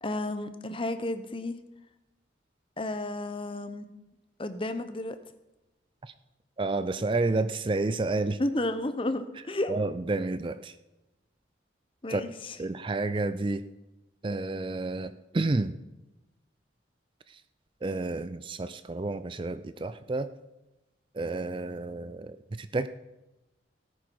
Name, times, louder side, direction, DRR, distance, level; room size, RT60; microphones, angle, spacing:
voice 1, 0.0-1.6 2.8-3.9 4.4-5.2 8.4-9.8 12.0-12.6, left 1 dB, 30° left, 10 dB, 0.8 m, -32 dB
voice 2, 6.6-8.4 9.7-10.7 12.1-12.2 12.6-13.6 14.2-15.7 17.8-20.3 21.1-22.9, right 2 dB, 25° right, 13 dB, 0.4 m, -30 dB
17.5 x 9.4 x 4.6 m, 1.0 s
head